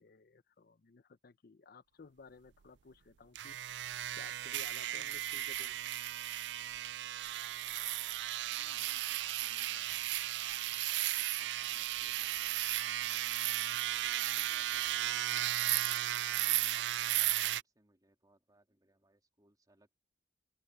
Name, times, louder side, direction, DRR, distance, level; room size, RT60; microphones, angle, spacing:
voice 1, 0.0-5.8, left 4 dB, 55° left, 0.6 m, -57 dB
sound 1, 3.4-17.6, right 14 dB, 75° right, 0.4 m, -35 dB
voice 2, 8.4-10.3 11.0-15.8 16.3-20.0, right 1 dB, 20° right, 3.1 m, -69 dB
open air
head